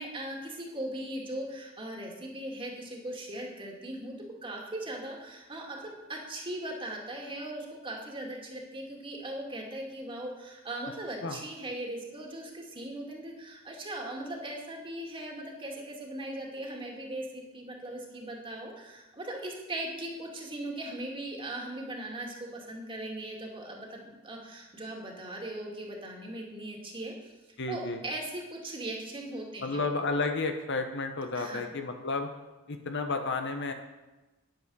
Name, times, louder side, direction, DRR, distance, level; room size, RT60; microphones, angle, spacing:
voice 1, 0.0-4.1 4.4-27.3 27.7-29.9 31.3-31.6, right 1 dB, 25° right, -1 dB, 2.4 m, -39 dB
voice 2, 27.6-28.0 29.6-32.3 32.7-33.7, left 3 dB, 60° left, 6 dB, 1.1 m, -31 dB
9.8 x 9.1 x 6.4 m, 1.1 s
head